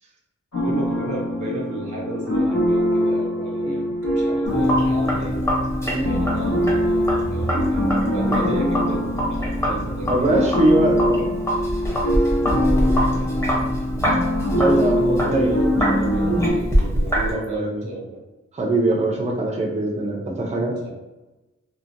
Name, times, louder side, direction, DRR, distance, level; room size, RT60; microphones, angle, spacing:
sound 1, 0.5-16.5, equal, 75° left, 1.1 m, -23 dB
voice 1, 0.5-3.8 4.1-5.4 6.0-10.6 12.5-13.7 14.9-18.2 20.7-20.9, right 2 dB, 80° right, -2 dB, 0.7 m, -33 dB
Sink (filling or washing), 4.5-17.3, equal, 10° left, 0.7 m, -25 dB
voice 2, 5.8-6.1 8.3-8.4 10.1-11.4 13.5-13.7 14.5-15.5 16.2-16.4 17.2-17.9 18.5-20.7, right 1 dB, 25° right, -1 dB, 0.4 m, -22 dB
2.7 x 2.1 x 2.4 m, 1.0 s
wide cardioid pair, 75°, 29 cm